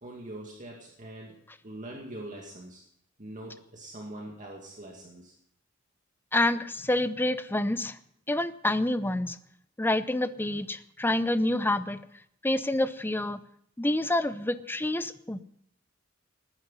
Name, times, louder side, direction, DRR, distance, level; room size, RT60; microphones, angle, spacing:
voice 1, 0.0-1.4 1.6-2.8 3.2-5.3, right 1 dB, 40° right, -1 dB, 2.2 m, -43 dB
voice 2, 6.3-8.0 8.3-9.4 9.8-12.0 12.4-13.4 13.8-15.4, left 1 dB, 10° left, 13 dB, 0.6 m, -27 dB
19.0 x 10.0 x 5.6 m, 0.70 s
head